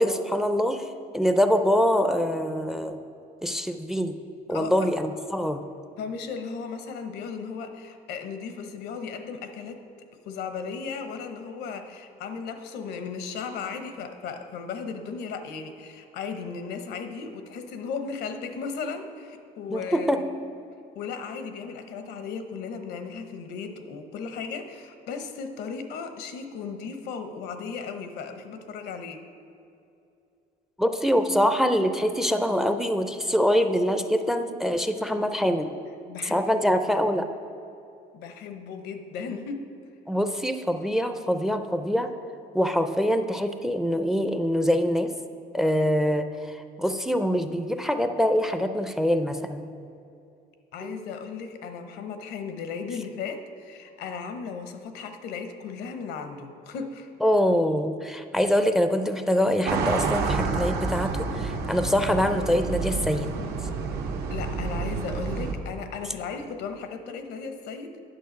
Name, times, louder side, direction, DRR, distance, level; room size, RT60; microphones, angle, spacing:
voice 1, 0.0-3.0 3.4-4.1 4.5-5.6 19.7-20.2 30.8-35.7 36.2-37.3 40.1-42.1 42.5-45.1 45.5-49.7 50.8-51.0 57.2-63.4, equal, ahead, 8 dB, 0.4 m, -24 dB
voice 2, 4.5-4.9 6.0-9.8 10.3-20.3 20.9-29.2 36.1-37.0 38.1-39.6 50.7-57.1 64.3-68.0, left 5 dB, 80° left, 7 dB, 0.9 m, -36 dB
sound 1, 59.7-65.5, right 4 dB, 75° right, 1.1 m, -29 dB
9.2 x 6.3 x 5.2 m, 2.6 s
cardioid pair, 110°, 17 cm